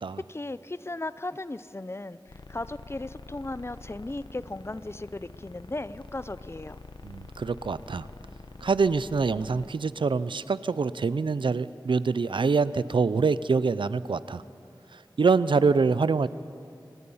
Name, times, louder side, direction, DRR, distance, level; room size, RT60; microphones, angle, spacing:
voice 1, 0.3-2.2 2.5-6.8, left 2 dB, 30° left, 16 dB, 0.6 m, -36 dB
sound 1, 2.3-9.7, left 3 dB, 70° left, 1.1 m, -46 dB
voice 2, 7.0-8.1 8.6-14.4 14.9-16.3, right 4 dB, 90° right, 16 dB, 0.5 m, -25 dB
26.0 x 18.5 x 5.6 m, 2.5 s
wide cardioid pair, 40°, 8 cm